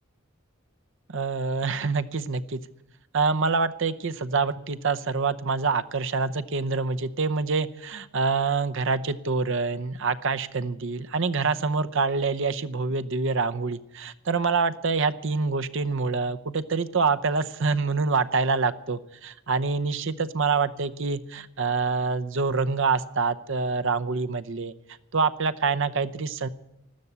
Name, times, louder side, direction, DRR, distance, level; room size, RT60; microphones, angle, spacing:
voice 1, 1.1-2.6 3.1-24.7 25.1-26.5, right 4 dB, 65° right, 11 dB, 0.8 m, -26 dB
13.5 x 13.0 x 8.1 m, 0.89 s
head